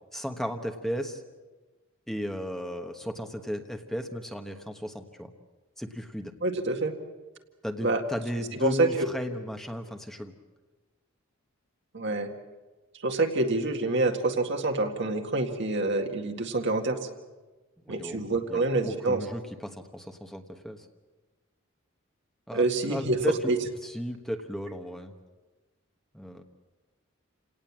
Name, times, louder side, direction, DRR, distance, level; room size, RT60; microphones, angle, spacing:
voice 1, 0.1-1.2 2.1-5.3 5.8-6.3 7.6-10.3 17.8-18.2 18.5-20.9 22.5-23.5 23.8-25.1 26.1-26.4, equal, ahead, 5 dB, 1.2 m, -35 dB
voice 2, 6.4-6.9 7.8-8.0 8.6-9.1 11.9-12.3 13.0-17.0 17.9-19.2 22.5-23.2 23.5-23.6, right 2 dB, 60° right, 4 dB, 2.0 m, -26 dB
29.0 x 18.0 x 7.4 m, 1.3 s
head